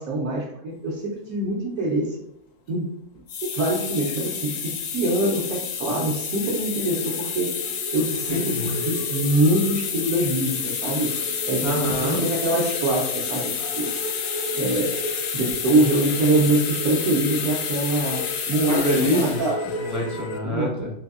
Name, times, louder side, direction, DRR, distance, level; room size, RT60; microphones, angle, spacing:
voice 1, 0.0-2.2 2.7-2.9 3.4-7.6 7.9-11.1 11.5-11.7 12.0-13.5 13.8-13.9 14.5-14.9 15.3-19.6 20.4-20.7, right 1 dB, 75° right, -4 dB, 1.1 m, -24 dB
sound 1, 3.2-20.4, left 5 dB, 70° left, 0.9 m, -29 dB
voice 2, 8.3-8.8 11.6-12.2 18.7-19.4 19.8-20.9, equal, 25° right, -4 dB, 0.3 m, -25 dB
3.9 x 2.6 x 2.4 m, 0.80 s
omnidirectional pair, 1.5 m